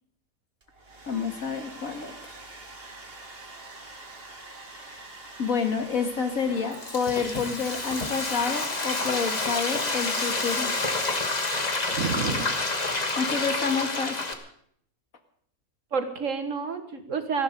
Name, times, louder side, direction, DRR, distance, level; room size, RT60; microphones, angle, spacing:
Domestic sounds home sounds, 0.6-9.8, right 2 dB, 40° right, 2.5 m, -45 dB
voice 1, 1.1-2.4 4.9-5.0 5.4-10.7 13.2-14.2, left 5 dB, 65° left, 6 dB, 2.2 m, -29 dB
Frying (food), 6.5-14.3, left 2 dB, 30° left, 1.7 m, -29 dB
voice 2, 11.9-12.5 15.9-17.4, right 5 dB, 60° right, 8 dB, 1.9 m, -29 dB
18.5 x 14.5 x 5.2 m, 0.66 s
omnidirectional pair, 1.6 m